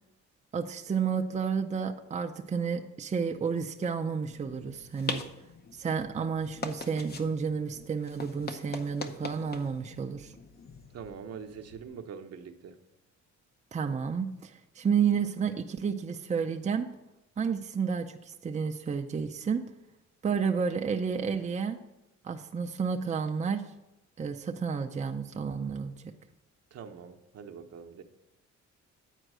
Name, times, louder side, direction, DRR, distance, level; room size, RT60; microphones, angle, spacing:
voice 1, 0.5-5.2 5.7-10.3 13.7-16.9 17.4-19.6 20.2-21.8 22.2-23.6 24.2-26.1, right 6 dB, 25° right, 5 dB, 0.5 m, -31 dB
sound 1, 4.3-11.9, left 4 dB, 35° left, 0.7 m, -42 dB
voice 2, 10.9-12.8 26.7-28.0, right 6 dB, 55° right, 5 dB, 0.8 m, -44 dB
9.0 x 4.5 x 6.1 m, 0.94 s
cardioid pair, 90°, 30 cm